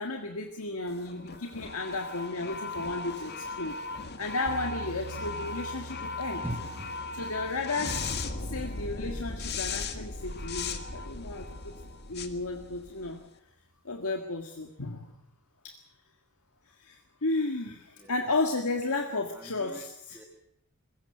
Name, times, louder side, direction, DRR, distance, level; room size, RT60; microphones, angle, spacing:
voice 1, 0.0-3.8 4.2-6.4 7.1-8.0 8.4-11.7 12.1-13.2 13.9-15.2 15.6-15.7 16.8-20.2, left 3 dB, 70° left, 4 dB, 1.8 m, -33 dB
sound 1, 0.9-13.3, left 3 dB, 50° left, 1.7 m, -37 dB
sound 2, 4.5-12.6, right 1 dB, 75° right, 3.1 m, -47 dB
voice 2, 6.4-7.0 10.5-10.8 18.0-18.1 19.1-19.8 20.1-20.2, equal, 10° right, 3 dB, 2.4 m, -42 dB
21.0 x 17.5 x 8.0 m, 0.75 s
head